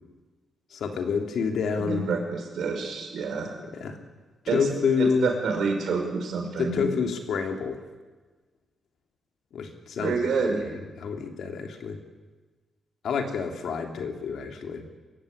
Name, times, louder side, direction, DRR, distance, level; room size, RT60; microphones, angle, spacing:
voice 1, 0.7-2.1 3.7-4.0 4.4-5.3 6.6-7.8 9.5-10.2 10.6-12.0 13.0-14.9, left 5 dB, 75° left, 5 dB, 3.1 m, -28 dB
voice 2, 1.8-3.5 4.5-4.6 5.2-6.8 10.0-10.7, right 4 dB, 80° right, 3 dB, 5.5 m, -28 dB
23.5 x 15.5 x 10.0 m, 1.3 s
cardioid pair, 120°, 0 cm